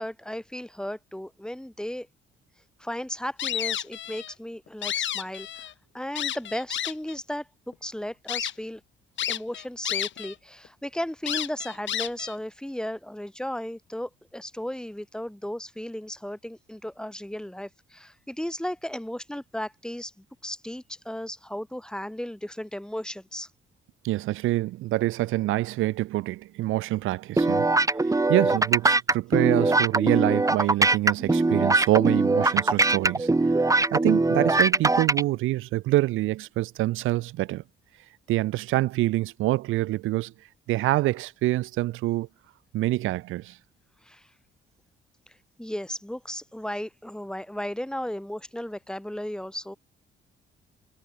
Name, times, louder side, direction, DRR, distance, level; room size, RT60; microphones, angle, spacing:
voice 1, 0.0-2.1 2.8-5.5 5.9-8.8 9.3-23.5 44.0-44.3 45.6-49.8, equal, 5° left, 4.8 m, -35 dB
sound 1, 3.4-4.3 4.7-5.7 6.2-7.1 7.7-7.8 8.3-8.5 9.2-10.3 10.6-10.7 11.3-12.4, left 11 dB, 70° left, 4.5 m, -31 dB
voice 2, 24.0-27.7 28.0-33.3 33.9-37.6 38.3-40.3 40.7-42.3 42.7-43.6, right 17 dB, 90° right, 1.0 m, -26 dB
sound 2, 27.4-35.2, right 2 dB, 15° right, 2.0 m, -21 dB
cardioid pair, 90°, 20 cm